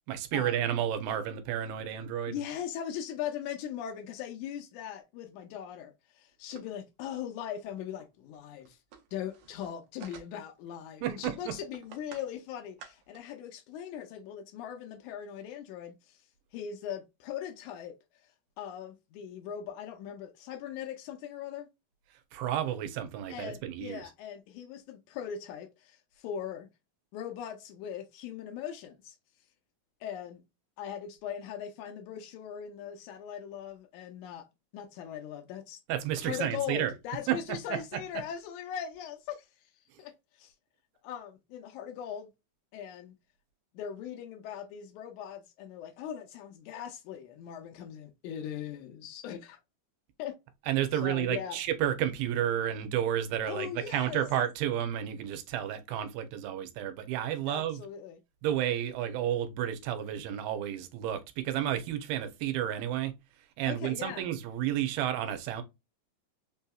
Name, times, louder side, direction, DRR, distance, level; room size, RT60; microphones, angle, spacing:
voice 1, 0.1-2.4 11.0-11.5 22.3-24.0 35.9-36.9 37.3-37.4 50.7-57.8 58.4-63.1 63.6-65.6, right 11 dB, 85° right, 2.5 m, -31 dB
voice 2, 2.3-8.8 9.1-16.2 16.5-18.0 18.6-21.7 23.3-26.7 27.1-29.2 30.0-30.4 30.8-34.5 34.7-35.8 36.2-39.5 40.0-40.5 41.0-42.3 42.7-43.1 43.7-49.6 50.2-50.4 50.9-51.6 53.5-54.2 57.5-58.2 63.6-64.3, left 9 dB, 90° left, 1.7 m, -40 dB
sound 1, 6.5-6.8 7.2-7.3 7.6-7.7 8.0-8.1 8.3-10.6 11.1-12.3 12.6-13.2, right 7 dB, 70° right, 1.9 m, -51 dB
5.4 x 2.7 x 2.2 m
omnidirectional pair, 4.1 m